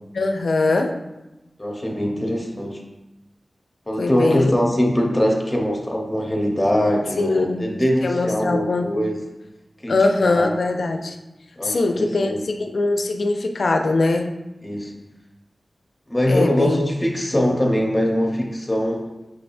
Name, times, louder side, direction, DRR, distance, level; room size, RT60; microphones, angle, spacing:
voice 1, 0.1-1.0 4.0-4.5 7.2-7.6 8.0-8.9 9.9-11.2 11.6-14.3 16.3-16.8, left 3 dB, 90° left, 5 dB, 0.4 m, -21 dB
voice 2, 1.6-2.8 3.9-9.2 9.8-10.5 11.6-12.4 14.6-14.9 16.1-19.1, equal, 20° left, -1 dB, 0.8 m, -22 dB
6.0 x 3.3 x 2.6 m, 1.0 s
wide cardioid pair, 80°, 0 cm